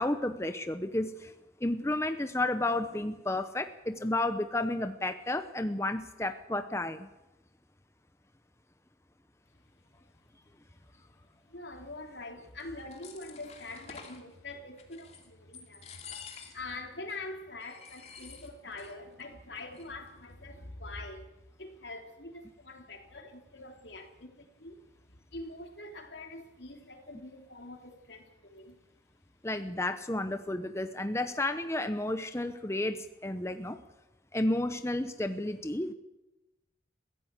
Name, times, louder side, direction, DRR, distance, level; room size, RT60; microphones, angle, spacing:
voice 1, 0.0-1.3 1.6-7.1 29.4-33.8 34.3-35.9, left 1 dB, 15° left, 0.8 m, -32 dB
voice 2, 11.5-21.3 21.6-28.8, left 2 dB, 80° left, 3.3 m, -44 dB
sound 1, 12.6-14.2 14.8-15.3 15.5-16.8 17.1-17.2 17.6-19.0 19.2-19.3 19.6-20.1, left 6 dB, 35° left, 2.8 m, -49 dB
23.0 x 16.0 x 8.3 m
head